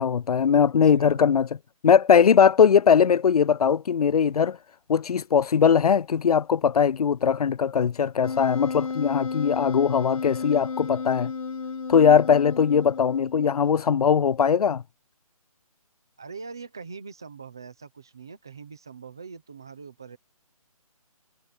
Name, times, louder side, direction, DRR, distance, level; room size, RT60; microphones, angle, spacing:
voice 1, 0.0-1.5 1.8-4.6 4.9-11.3 11.9-14.8, left 7 dB, 85° left, 0.4 m, -20 dB
voice 2, 0.5-1.3 16.2-20.2, right 5 dB, 5° right, 0.5 m, -42 dB
Wind instrument woodwind instrument, 8.2-13.6, left 5 dB, 65° left, 3.3 m, -33 dB
hypercardioid pair, 175°, 19 cm